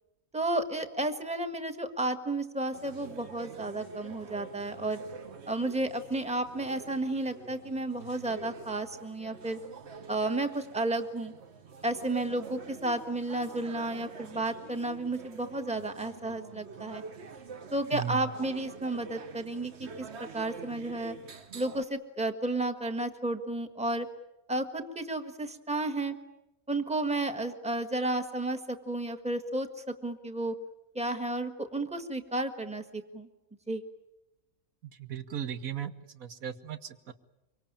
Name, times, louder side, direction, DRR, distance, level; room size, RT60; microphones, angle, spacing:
voice 1, 0.3-5.0 5.5-9.6 10.1-11.3 11.8-17.0 17.7-20.1 20.3-21.1 21.5-24.1 24.5-26.1 26.7-30.5 30.9-33.3 33.7-33.8, right 2 dB, 5° right, 7 dB, 1.4 m, -32 dB
sound 1, 2.7-21.8, right 5 dB, 55° right, 1.3 m, -47 dB
voice 2, 17.9-18.3 34.8-37.1, right 9 dB, 85° right, 10 dB, 1.7 m, -37 dB
25.0 x 24.0 x 8.8 m, 0.96 s
omnidirectional pair, 1.4 m